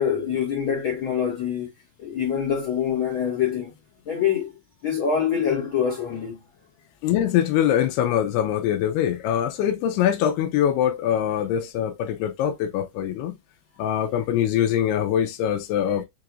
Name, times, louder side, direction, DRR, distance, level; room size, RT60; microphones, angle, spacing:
voice 1, 0.0-1.7 2.0-3.7 4.0-4.5 4.8-6.4, left 8 dB, 55° left, 1.4 m, -25 dB
voice 2, 7.0-13.3 13.8-16.1, left 10 dB, 90° left, 2.6 m, -23 dB
6.7 x 2.9 x 2.4 m
omnidirectional pair, 4.6 m